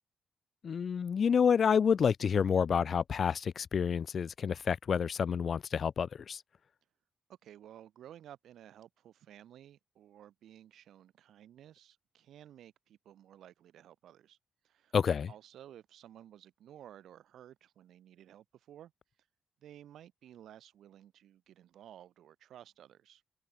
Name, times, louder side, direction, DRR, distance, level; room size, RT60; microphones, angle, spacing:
voice 1, 0.6-6.4 14.9-15.3, left 7 dB, 55° left, 0.4 m, -29 dB
voice 2, 7.4-14.4 14.6-15.0 15.3-18.9 19.6-23.2, right 11 dB, 90° right, 3.8 m, -55 dB
cardioid pair, 105°, 0 cm